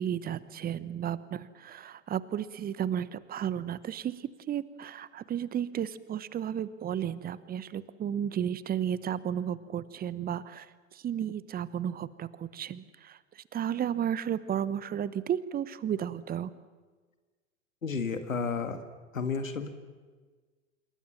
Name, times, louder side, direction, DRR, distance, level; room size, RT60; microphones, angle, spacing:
voice 1, 0.0-10.6 11.0-13.2 13.5-16.5, right 9 dB, 25° right, 17 dB, 1.1 m, -33 dB
voice 2, 17.8-18.8 19.1-19.7, left 5 dB, 85° left, 9 dB, 2.0 m, -32 dB
27.0 x 22.5 x 7.3 m, 1.4 s
figure-of-eight pair, 95°, 39 cm